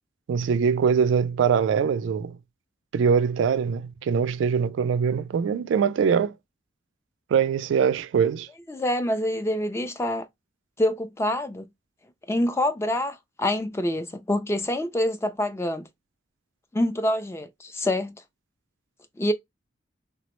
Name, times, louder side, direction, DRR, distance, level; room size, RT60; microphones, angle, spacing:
voice 1, 0.3-2.4 2.9-6.3 7.3-8.5, right 6 dB, 75° right, 0.3 m, -23 dB
voice 2, 8.7-10.3 10.8-11.7 12.3-15.9 16.7-18.2 19.2-19.3, left 1 dB, 15° left, 0.3 m, -26 dB
3.5 x 2.0 x 2.9 m
head